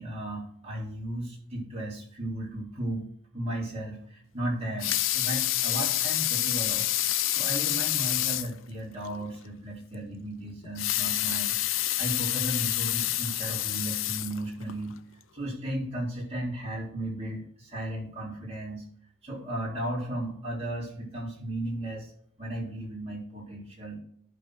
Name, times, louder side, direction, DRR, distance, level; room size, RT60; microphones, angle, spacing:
voice 1, 0.0-3.1 3.3-11.6 12.0-14.9 15.3-18.8 19.2-22.1 22.4-24.0, right 1 dB, 30° right, -5 dB, 3.9 m, -35 dB
Water tap faucet / Sink (filling or washing) / Liquid, 4.6-8.6 9.0-9.1 9.4-9.5 10.6-14.8 15.4-15.5, left 14 dB, 70° left, 0.5 m, -28 dB
11.5 x 4.4 x 5.9 m, 0.63 s
head